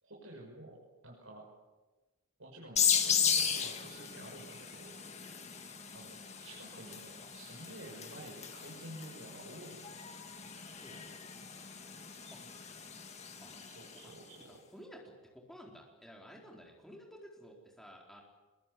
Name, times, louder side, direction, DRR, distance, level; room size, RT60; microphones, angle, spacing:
voice 1, 0.0-1.4 2.4-4.9 5.9-10.0 13.6-14.6, right 1 dB, 65° right, -2 dB, 6.6 m, -51 dB
sound 1, 2.8-14.1, left 7 dB, 30° left, 2.1 m, -36 dB
voice 2, 14.5-15.0 15.3-18.2, equal, ahead, -1 dB, 4.3 m, -53 dB
26.0 x 22.5 x 8.6 m, 1.2 s
head